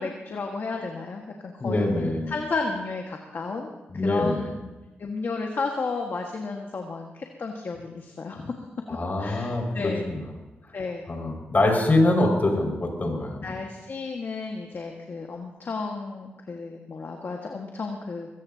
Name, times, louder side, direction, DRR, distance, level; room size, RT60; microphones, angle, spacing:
voice 1, 0.0-3.7 4.0-4.7 5.0-8.5 9.2-10.1 10.7-11.0 13.4-18.3, left 4 dB, 55° left, 1 dB, 1.8 m, -33 dB
voice 2, 1.6-2.3 3.9-4.5 8.9-10.3 11.1-13.5, left 2 dB, 40° left, 1 dB, 5.8 m, -24 dB
22.0 x 17.0 x 2.9 m, 1.1 s
cardioid pair, 60°, 4 cm